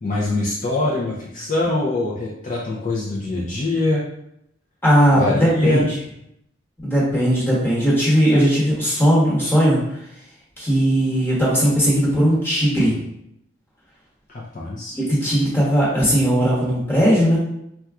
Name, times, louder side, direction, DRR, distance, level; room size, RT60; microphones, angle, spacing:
voice 1, 0.0-4.0 5.1-5.9 8.3-8.5 14.3-15.0, left 2 dB, 40° left, -5 dB, 0.5 m, -23 dB
voice 2, 4.8-5.8 6.8-9.8 10.6-13.0 14.9-17.4, equal, 10° left, -7 dB, 1.0 m, -18 dB
4.0 x 2.3 x 2.4 m, 0.78 s
head